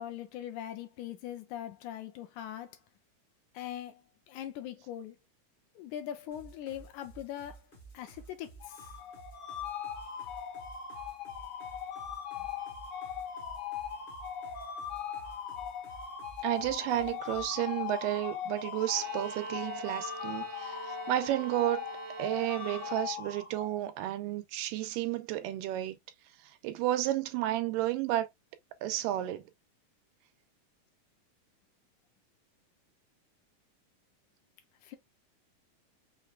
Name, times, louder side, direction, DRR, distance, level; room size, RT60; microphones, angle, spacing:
voice 1, 0.0-2.7 3.6-4.0 4.3-5.2 5.8-7.6 7.9-8.5 34.8-35.0, left 11 dB, 80° left, 1.9 m, -41 dB
sound 1, 6.3-17.6, right 4 dB, 40° left, 0.7 m, -53 dB
sound 2, 8.6-23.9, left 8 dB, 65° left, 2.2 m, -40 dB
voice 2, 16.4-21.8 22.2-26.0 26.6-28.3 28.8-29.5, right 14 dB, 90° right, 2.3 m, -32 dB
Bowed string instrument, 18.9-23.6, right 6 dB, 70° right, 1.1 m, -45 dB
5.8 x 3.3 x 2.2 m
omnidirectional pair, 3.8 m